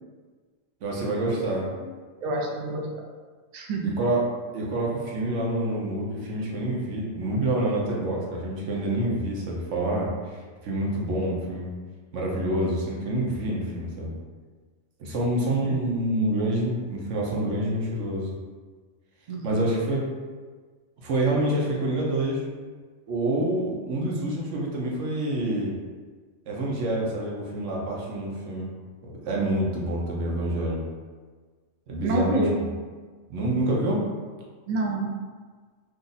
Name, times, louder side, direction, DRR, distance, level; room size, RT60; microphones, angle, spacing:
voice 1, 0.8-1.7 4.0-4.2 4.5-11.7 12.1-14.1 15.0-18.3 19.4-20.0 21.0-22.4 23.1-25.7 26.5-28.7 29.0-30.8 31.9-32.4 33.3-34.0, right 1 dB, 75° right, -3 dB, 1.1 m, -27 dB
voice 2, 2.2-3.0 3.5-3.9 15.6-15.7 19.3-19.4 32.0-32.5 34.7-35.1, right 2 dB, 55° right, -1 dB, 0.5 m, -27 dB
2.8 x 2.5 x 3.9 m, 1.5 s
omnidirectional pair, 1.3 m